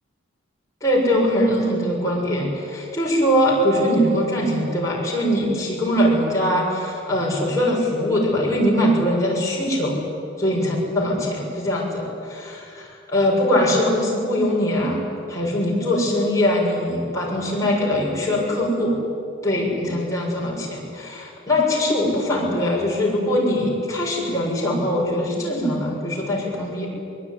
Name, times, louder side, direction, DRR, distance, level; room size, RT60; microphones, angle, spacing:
voice 1, 0.8-10.0 10.4-12.8 13.1-15.0 15.3-18.9 19.4-26.9, equal, 15° left, -4 dB, 7.0 m, -22 dB
23.0 x 22.0 x 9.9 m, 2.6 s
head